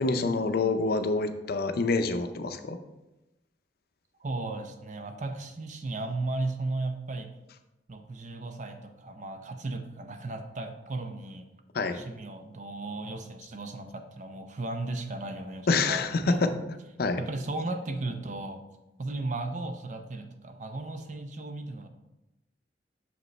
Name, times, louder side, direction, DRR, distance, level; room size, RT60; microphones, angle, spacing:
voice 1, 0.0-2.8 11.7-12.0 15.7-16.5 17.0-17.2, left 3 dB, 60° left, 8 dB, 0.5 m, -26 dB
voice 2, 4.2-7.3 7.9-11.5 11.9-16.6 17.2-18.6 19.0-21.9, right 2 dB, 45° right, 6 dB, 0.6 m, -35 dB
6.6 x 5.2 x 3.1 m, 0.98 s
head